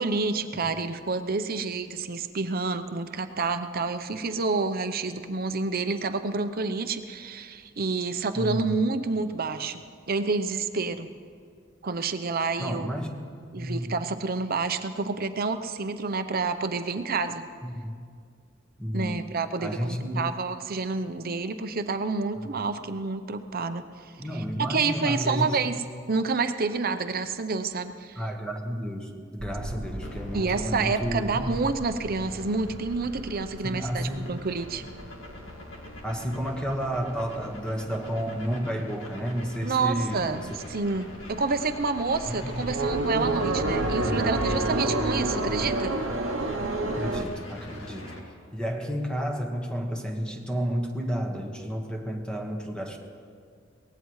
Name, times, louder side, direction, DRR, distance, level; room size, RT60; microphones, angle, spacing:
voice 1, 0.0-11.1 11.8-12.9 13.5-17.4 18.9-24.4 24.7-25.8 26.1-28.2 30.3-34.8 39.6-45.9, right 4 dB, 50° right, 9 dB, 0.8 m, -29 dB
voice 2, 8.3-8.8 12.6-13.2 13.5-13.9 17.6-18.0 18.8-19.3 19.6-20.3 24.2-25.7 28.1-31.5 33.6-34.3 36.0-40.5 42.3-42.8 46.8-48.2 48.5-53.0, equal, 5° left, 2 dB, 1.4 m, -31 dB
sound 1, 29.4-38.3 38.6-39.4 39.7-39.8 40.1-47.2, right 2 dB, 80° right, 1.0 m, -31 dB
sound 2, 30.0-48.2, left 1 dB, 75° left, 2.1 m, -44 dB
23.0 x 18.5 x 3.2 m, 2.1 s
head